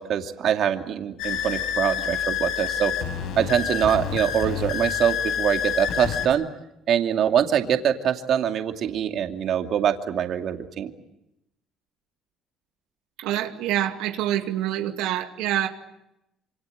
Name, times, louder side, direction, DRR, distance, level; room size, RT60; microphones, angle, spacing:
voice 1, 0.0-2.9 3.4-6.4 6.9-10.9, right 9 dB, 60° right, 5 dB, 2.5 m, -24 dB
sound 1, 1.2-6.3, left 8 dB, 80° left, 6.9 m, -28 dB
voice 2, 13.2-15.7, right 12 dB, 90° right, 4 dB, 2.2 m, -26 dB
27.0 x 26.5 x 7.9 m, 0.84 s
cardioid pair, 110°, 0 cm